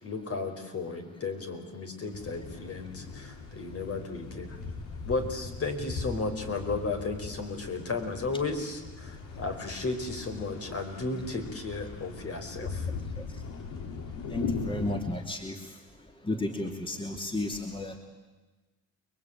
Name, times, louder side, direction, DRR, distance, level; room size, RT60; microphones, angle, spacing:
voice 1, 0.0-4.5 5.1-12.8, left 3 dB, 50° left, 5 dB, 4.9 m, -34 dB
sound 1, 2.1-15.0, left 4 dB, 85° left, 2.8 m, -39 dB
voice 2, 14.3-15.5 16.3-18.0, left 1 dB, 15° left, 3 dB, 2.8 m, -32 dB
29.5 x 22.0 x 9.1 m, 1.2 s
cardioid pair, 90°, 30 cm